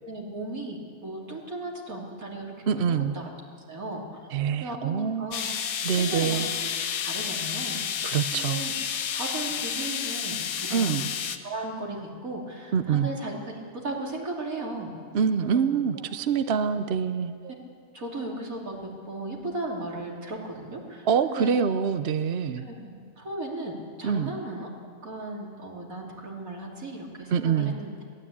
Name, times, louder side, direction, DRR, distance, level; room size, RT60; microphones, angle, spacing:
voice 1, 0.0-3.3 3.7-4.3 4.6-5.5 6.0-6.4 7.0-7.8 8.3-8.7 9.1-11.0 11.4-14.9 15.4-15.8 17.4-17.5 17.9-21.6 22.5-24.7 25.0-27.9, right 2 dB, 80° right, -1 dB, 3.4 m, -36 dB
voice 2, 2.7-3.1 4.3-5.3 5.8-6.5 8.0-8.6 10.7-11.1 12.7-13.1 15.1-17.3 21.1-22.7 24.0-24.3 27.3-27.8, right 7 dB, 55° right, 10 dB, 0.9 m, -25 dB
sound 1, 5.3-11.4, left 7 dB, 90° left, 1.4 m, -30 dB
21.5 x 16.0 x 8.6 m, 2.1 s
omnidirectional pair, 1.5 m